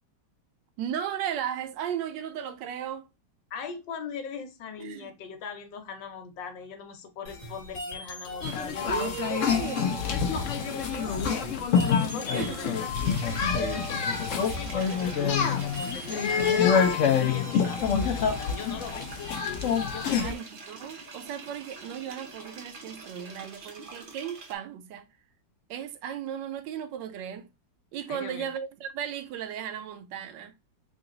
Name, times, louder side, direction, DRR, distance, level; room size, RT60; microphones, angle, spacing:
voice 1, 0.8-3.1 4.8-5.1 8.9-10.2 12.3-12.6 14.8-14.9 20.2-25.1 25.7-27.5 27.9-30.6, right 9 dB, 80° right, 1.2 m, -36 dB
voice 2, 3.5-9.2 10.6-11.6 11.9-13.7 14.0-19.2 19.9-20.4 28.1-28.5, left 6 dB, 80° left, 1.6 m, -40 dB
sound 1, 7.3-19.3, left 4 dB, 40° left, 1.5 m, -40 dB
sound 2, 8.4-20.3, left 6 dB, 60° left, 0.8 m, -27 dB
sound 3, 12.9-24.5, right 3 dB, 60° right, 0.5 m, -45 dB
3.9 x 2.3 x 3.8 m
omnidirectional pair, 2.0 m